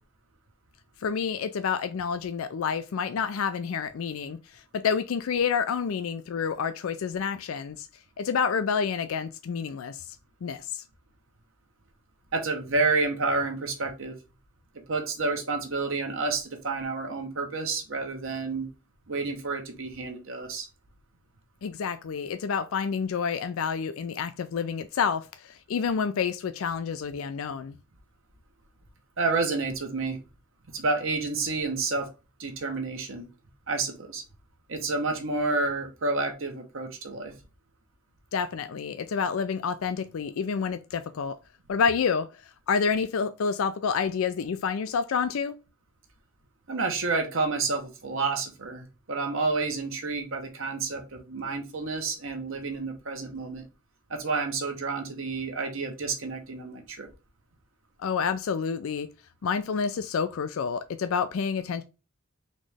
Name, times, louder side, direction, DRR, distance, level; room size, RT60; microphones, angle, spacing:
voice 1, 1.0-7.9 8.2-10.2 10.4-10.8 21.6-27.8 38.3-41.4 41.7-42.3 42.7-45.5 58.0-59.1 59.4-61.8, left 6 dB, 65° left, 0.4 m, -28 dB
voice 2, 12.3-14.2 14.9-18.7 19.1-20.7 29.2-30.2 30.7-32.1 32.4-33.2 33.7-34.2 34.7-37.3 46.7-53.6 54.1-57.1, right 3 dB, 60° right, 1.0 m, -29 dB
4.2 x 3.1 x 3.3 m
head